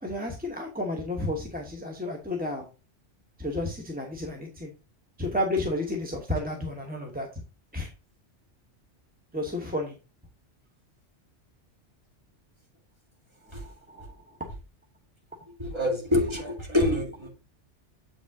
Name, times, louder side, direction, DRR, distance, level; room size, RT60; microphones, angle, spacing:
voice 1, 0.0-2.6 3.4-4.7 5.2-7.4 7.7-7.9 9.3-10.0 13.4-14.4, left 1 dB, 10° right, 1 dB, 1.0 m, -32 dB
voice 2, 15.6-17.3, left 1 dB, 25° right, 0 dB, 2.0 m, -26 dB
7.5 x 5.1 x 3.5 m, 0.30 s
omnidirectional pair, 1.2 m